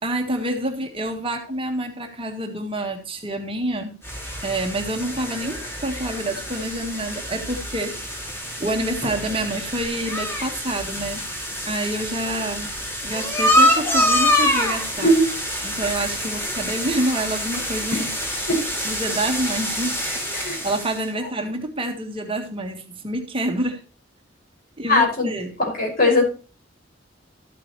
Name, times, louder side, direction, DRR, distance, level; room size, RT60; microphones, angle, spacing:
voice 1, 0.0-4.0 4.4-8.3 8.6-11.2 11.6-12.7 13.0-15.1 15.6-18.2 18.8-20.0 20.6-23.8 24.8-25.5, right 1 dB, 30° right, 3 dB, 1.6 m, -27 dB
sound 1, 4.0-21.0, left 1 dB, 15° left, 2.8 m, -26 dB
voice 2, 15.0-15.3 17.9-18.0 18.5-18.6 20.3-20.6 24.9-25.3 25.7-26.3, left 1 dB, 50° left, -1 dB, 6.0 m, -19 dB
13.5 x 8.9 x 3.2 m, 0.35 s
head